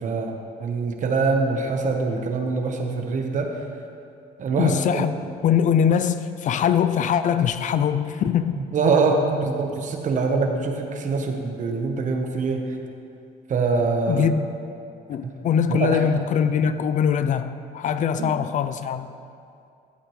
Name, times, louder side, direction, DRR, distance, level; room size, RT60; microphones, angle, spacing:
voice 1, 0.0-3.6 4.4-5.0 8.7-12.7 13.5-14.3 15.2-15.3 15.7-16.0 18.2-18.3, right 4 dB, 50° right, 4 dB, 1.1 m, -24 dB
voice 2, 4.6-5.1 5.4-8.6 14.1-14.5 15.1-19.1, left 8 dB, 50° left, 11 dB, 0.4 m, -22 dB
14.0 x 7.8 x 3.2 m, 2.5 s
cardioid pair, 110°, 17 cm